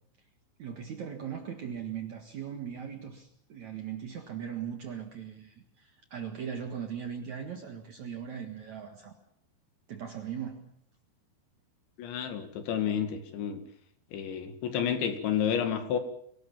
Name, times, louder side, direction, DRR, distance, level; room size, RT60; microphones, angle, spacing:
voice 1, 0.6-9.2 9.9-10.7, right 8 dB, 55° right, 5 dB, 2.3 m, -39 dB
voice 2, 12.0-13.6 14.1-16.0, left 8 dB, 75° left, 7 dB, 4.3 m, -30 dB
24.0 x 18.5 x 7.4 m, 0.66 s
omnidirectional pair, 5.4 m